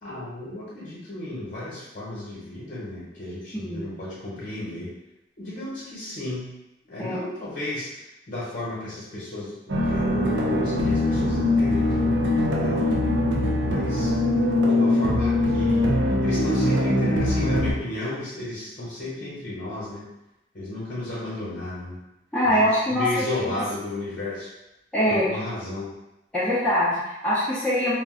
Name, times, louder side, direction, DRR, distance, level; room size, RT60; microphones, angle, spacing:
voice 1, 0.0-4.9 5.4-6.5 6.9-7.9 8.3-12.1 12.6-12.8 13.6-14.1 14.6-16.0 16.2-20.1 20.5-22.0 22.4-24.5 25.1-25.9, left 1 dB, 45° left, -8 dB, 0.9 m, -33 dB
voice 2, 3.5-3.9 7.0-7.2 22.3-23.2 24.9-25.3 26.3-27.9, equal, 5° left, -12 dB, 0.5 m, -23 dB
sound 1, 9.7-17.7, left 1 dB, 70° right, 0.5 m, -22 dB
2.4 x 2.1 x 3.6 m, 0.92 s
head